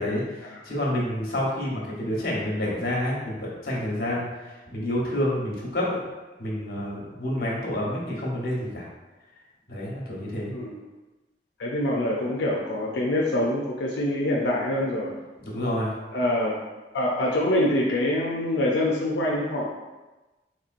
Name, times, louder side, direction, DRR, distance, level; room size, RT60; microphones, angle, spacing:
voice 1, 0.0-6.0 6.4-8.9 9.7-10.5 15.4-15.9, left 1 dB, 55° left, -4 dB, 1.1 m, -28 dB
voice 2, 11.6-15.2 16.1-16.5 16.9-19.7, left 1 dB, 85° left, -3 dB, 0.5 m, -25 dB
4.2 x 3.2 x 2.5 m, 1.1 s
head